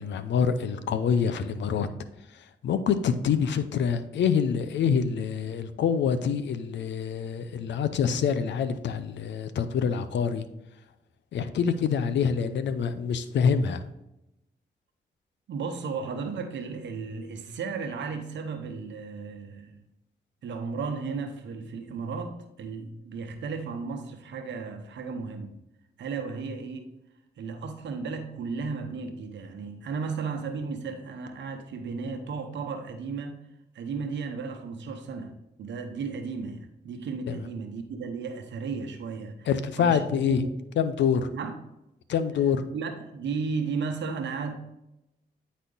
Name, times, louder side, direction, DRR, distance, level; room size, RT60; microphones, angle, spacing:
voice 1, 0.0-1.9 2.3-10.4 11.3-13.8 37.3-37.4 39.5-40.5 40.8-41.3 42.1-42.6, left 7 dB, 90° left, 12 dB, 0.6 m, -26 dB
voice 2, 15.5-19.8 20.4-25.5 26.0-26.9 27.4-33.4 33.7-35.3 35.6-39.5 39.8-40.6 41.3-41.6 42.7-44.5, right 5 dB, 90° right, 6 dB, 0.9 m, -34 dB
9.4 x 4.2 x 3.9 m, 0.89 s
cardioid pair, 50°, 18 cm